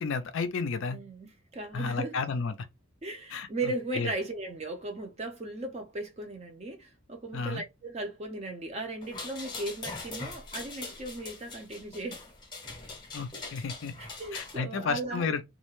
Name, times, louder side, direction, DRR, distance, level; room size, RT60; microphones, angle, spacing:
voice 1, 0.0-1.0 1.7-2.5 3.3-3.5 3.9-4.1 7.3-7.6 13.1-13.9 14.3-15.4, left 4 dB, 55° left, 0.4 m, -32 dB
voice 2, 0.9-2.2 3.0-12.2 14.0-15.3, right 2 dB, 30° right, 0.5 m, -37 dB
sound 1, 9.0-14.6, left 3 dB, 20° left, 0.7 m, -42 dB
2.3 x 2.1 x 3.0 m
head